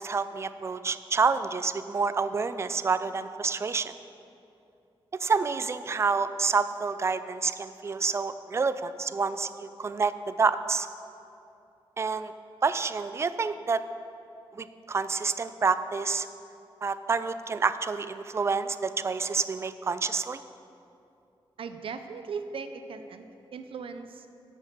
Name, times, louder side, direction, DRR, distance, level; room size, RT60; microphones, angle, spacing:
voice 1, 0.0-3.9 5.2-10.9 12.0-12.3 12.6-13.8 14.5-16.3 16.8-20.4, right 4 dB, 30° right, 12 dB, 0.3 m, -28 dB
voice 2, 21.6-23.2 23.5-24.3, right 5 dB, 75° right, 8 dB, 0.6 m, -38 dB
10.5 x 6.3 x 7.4 m, 2.7 s
wide cardioid pair, 170°, 9 cm